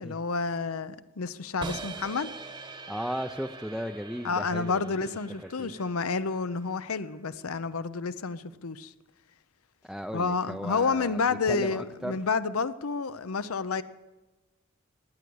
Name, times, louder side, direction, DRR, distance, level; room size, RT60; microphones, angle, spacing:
voice 1, 0.0-2.3 4.2-8.9 10.1-13.8, left 4 dB, 85° left, 14 dB, 0.7 m, -30 dB
sound 1, 1.6-7.6, right 3 dB, 20° right, 1.1 m, -44 dB
voice 2, 2.9-5.0 5.4-5.7 9.8-12.2, equal, ahead, 4 dB, 0.4 m, -36 dB
15.5 x 11.0 x 8.6 m, 1.1 s
head